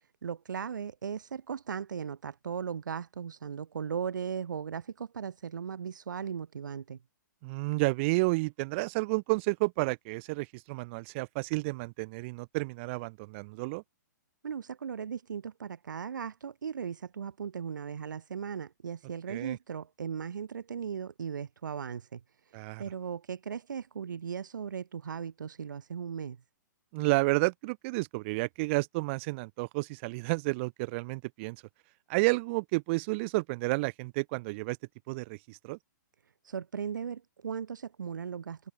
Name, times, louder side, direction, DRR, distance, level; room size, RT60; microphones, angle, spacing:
voice 1, 0.2-7.0 14.4-22.2 22.8-26.4 36.4-38.7, right 7 dB, 75° right, 5.1 m, -37 dB
voice 2, 7.4-13.8 19.3-19.6 22.5-22.8 26.9-31.6 32.1-34.8 35.1-35.8, right 25 dB, 40° right, 1.4 m, -31 dB
hypercardioid pair, 130°, 10 cm